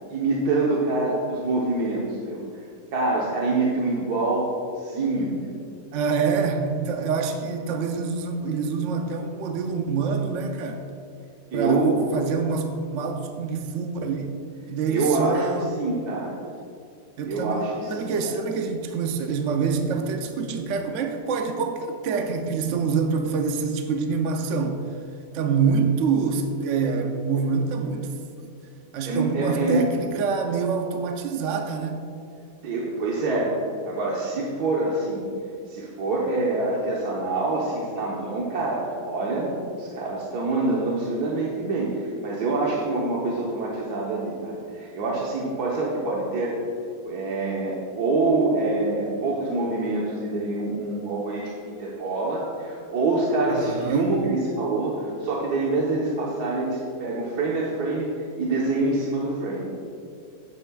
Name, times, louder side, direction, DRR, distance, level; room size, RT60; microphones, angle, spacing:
voice 1, 0.1-2.6 2.9-5.5 11.5-12.0 14.9-15.5 15.8-16.4 17.3-18.3 27.4-27.5 29.1-29.8 32.6-33.5 33.9-35.3 35.7-46.5 47.1-59.7, right 2 dB, 75° right, -4 dB, 1.6 m, -26 dB
voice 2, 5.9-10.8 11.5-11.8 12.1-14.3 14.7-15.7 17.2-17.6 17.9-24.8 25.3-28.5 28.9-32.0 53.7-54.1, right 5 dB, 60° right, 4 dB, 0.9 m, -26 dB
12.5 x 9.3 x 2.3 m, 2.4 s
omnidirectional pair, 1.7 m